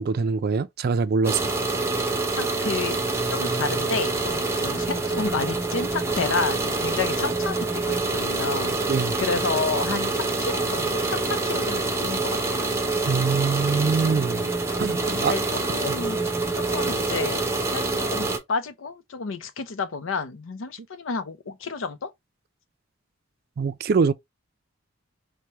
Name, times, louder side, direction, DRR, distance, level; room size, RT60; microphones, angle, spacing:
voice 1, 0.0-1.4 8.9-9.1 13.1-14.4 14.8-15.3 23.6-24.1, right 5 dB, 50° right, 0.4 m, -23 dB
sound 1, 1.2-18.4, right 3 dB, 15° right, 0.7 m, -26 dB
voice 2, 2.3-3.0 3.3-8.8 9.2-12.7 14.4-14.5 15.1-15.4 15.7-16.2 16.5-17.4 17.7-22.1, left 4 dB, 85° left, 0.6 m, -30 dB
4.6 x 2.2 x 2.7 m
head